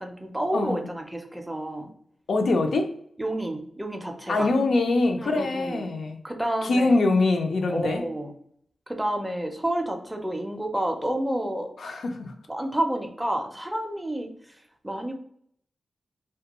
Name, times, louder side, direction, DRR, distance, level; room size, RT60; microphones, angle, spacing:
voice 1, 0.0-1.9 3.2-4.5 5.2-5.9 6.2-6.9 7.7-8.3 8.9-11.7 12.5-14.6 14.8-15.1, right 1 dB, 5° right, 4 dB, 0.4 m, -30 dB
voice 2, 2.3-2.9 4.3-6.2 6.6-8.0 11.8-12.3, left 2 dB, 80° left, 5 dB, 0.4 m, -23 dB
2.2 x 2.2 x 2.9 m, 0.66 s
wide cardioid pair, 130°, 0 cm